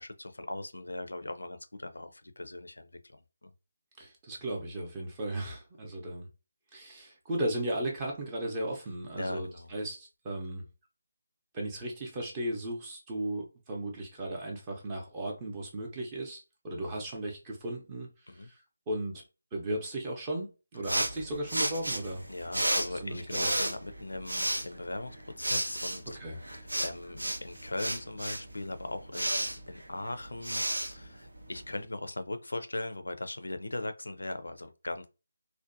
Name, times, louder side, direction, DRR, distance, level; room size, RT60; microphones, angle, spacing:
voice 1, 0.0-3.5 9.1-9.7 18.3-18.5 22.3-26.2 26.5-30.7 30.9-35.1, left 2 dB, 85° left, 0.4 m, -39 dB
voice 2, 4.0-6.3 6.7-10.7 11.5-19.2 19.5-22.2 23.0-23.6 26.1-26.4, right 1 dB, 20° right, 0.6 m, -36 dB
sound 1, 20.8-31.8, right 1 dB, 85° right, 0.6 m, -33 dB
2.6 x 2.1 x 2.5 m
figure-of-eight pair, 160°, 0 cm